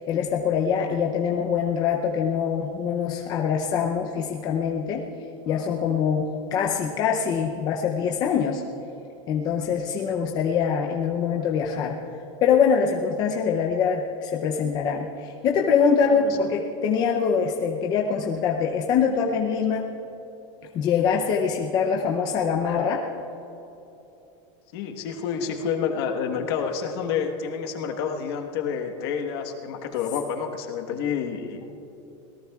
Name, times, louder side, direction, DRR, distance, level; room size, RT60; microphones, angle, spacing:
voice 1, 0.1-5.0 5.5-8.6 9.3-12.0 12.4-19.8 20.7-23.0, left 6 dB, 25° left, 1 dB, 0.6 m, -24 dB
voice 2, 16.0-16.4 24.7-31.8, left 7 dB, 50° left, 4 dB, 1.3 m, -29 dB
25.5 x 18.0 x 2.4 m, 2.9 s
supercardioid pair, 175°, 16 cm